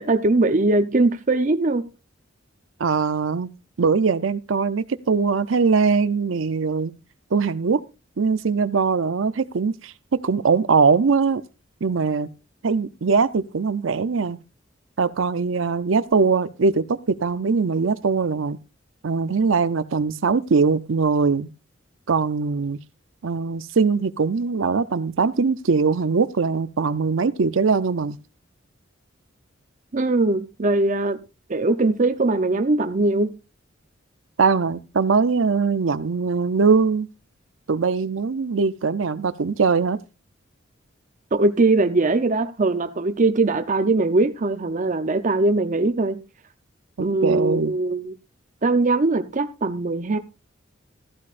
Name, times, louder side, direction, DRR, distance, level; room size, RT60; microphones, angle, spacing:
voice 1, 0.0-1.8 29.9-31.2 31.5-33.3 41.3-46.2 47.0-48.1 48.6-50.2, right 2 dB, 40° right, 0.7 m, -21 dB
voice 2, 2.8-3.5 3.8-6.9 7.3-7.8 8.2-9.9 10.2-11.4 11.8-12.3 12.6-14.4 15.0-18.6 19.0-21.5 22.1-22.8 23.2-28.2 34.4-37.1 37.7-40.0 47.0-47.7, right 5 dB, 90° right, 0.6 m, -21 dB
14.0 x 12.0 x 2.5 m
head